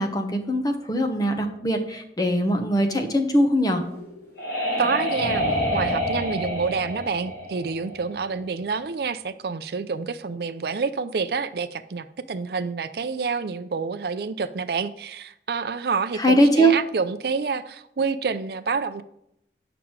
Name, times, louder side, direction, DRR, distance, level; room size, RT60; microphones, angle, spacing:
voice 1, 0.0-3.8 16.2-16.7, right 1 dB, 20° left, 5 dB, 0.9 m, -21 dB
sound 1, 3.8-8.4, equal, 85° left, 3.4 m, -27 dB
voice 2, 4.8-19.0, right 5 dB, 60° right, 11 dB, 0.4 m, -28 dB
9.2 x 6.0 x 4.7 m, 0.78 s
head